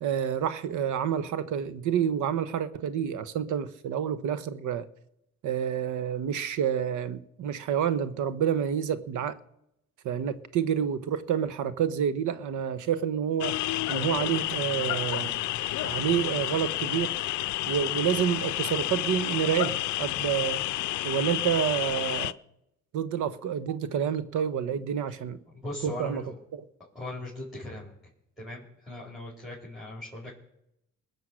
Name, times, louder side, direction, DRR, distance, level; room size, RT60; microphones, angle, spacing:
voice 1, 0.0-4.9 5.4-9.4 10.0-13.6 13.9-15.3 15.8-17.2 17.7-20.6 21.0-22.4 22.9-25.4 25.8-26.2 26.5-26.6, right 8 dB, 80° right, 1.0 m, -28 dB
sound 1, 13.4-22.3, left 16 dB, 75° left, 0.5 m, -30 dB
voice 2, 25.5-26.3 26.9-27.9 28.4-30.3, left 2 dB, ahead, 4.6 m, -39 dB
20.5 x 7.1 x 6.3 m
cardioid pair, 90°, 30 cm